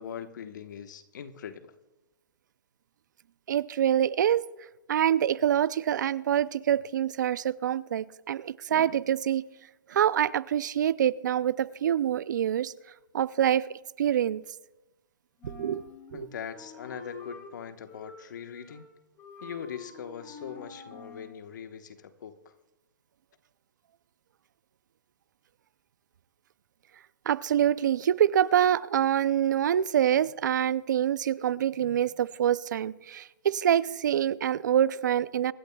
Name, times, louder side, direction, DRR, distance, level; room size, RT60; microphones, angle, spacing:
voice 1, 0.0-1.7 16.1-18.9 19.4-22.5, left 8 dB, 60° left, 8 dB, 1.2 m, -41 dB
voice 2, 3.5-4.4 4.9-9.4 9.9-12.7 13.1-13.7 14.0-14.4 15.4-15.8 16.1-16.3 27.3-35.5, right 10 dB, 60° right, 19 dB, 0.5 m, -25 dB
Wind instrument woodwind instrument, 15.4-17.5 17.9-18.9 19.2-21.4, left 5 dB, 20° left, 2.3 m, -47 dB
25.0 x 12.0 x 2.3 m, 1.0 s
hypercardioid pair, 155°, 11 cm